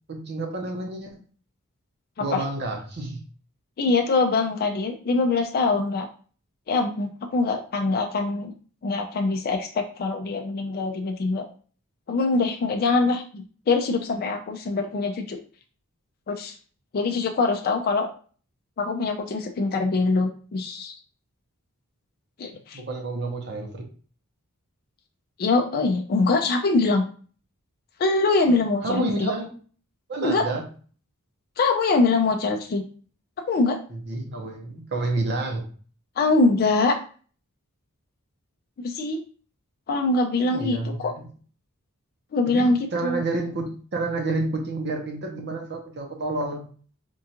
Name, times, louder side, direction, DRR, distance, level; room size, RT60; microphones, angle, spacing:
voice 1, 0.1-1.2 2.2-3.2 22.7-23.8 28.5-28.6 28.8-29.5 30.1-30.7 33.9-35.7 40.5-41.2 42.5-46.7, right 2 dB, 50° right, 2 dB, 0.8 m, -29 dB
voice 2, 3.8-6.1 6.7-8.5 8.8-11.4 12.1-15.4 16.3-16.6 16.9-18.1 18.8-20.9 22.4-22.8 25.4-27.0 28.0-29.3 30.2-30.4 31.6-32.8 33.5-33.8 36.2-37.0 38.8-39.2 39.9-41.1 42.3-43.2, left 3 dB, 45° left, 4 dB, 0.4 m, -23 dB
4.5 x 2.4 x 2.8 m, 0.41 s
head